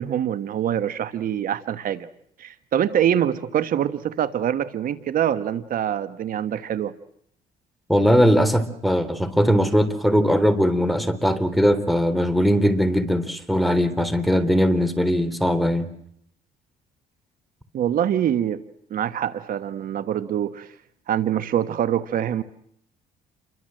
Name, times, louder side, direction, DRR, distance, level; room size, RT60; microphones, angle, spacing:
voice 1, 0.0-2.1 2.4-6.9 17.7-18.6 18.9-20.7 21.1-22.4, right 10 dB, 55° right, 12 dB, 1.4 m, -24 dB
voice 2, 7.9-15.9, equal, ahead, 11 dB, 3.6 m, -20 dB
29.0 x 23.5 x 7.8 m, 0.70 s
cardioid pair, 110°, 17 cm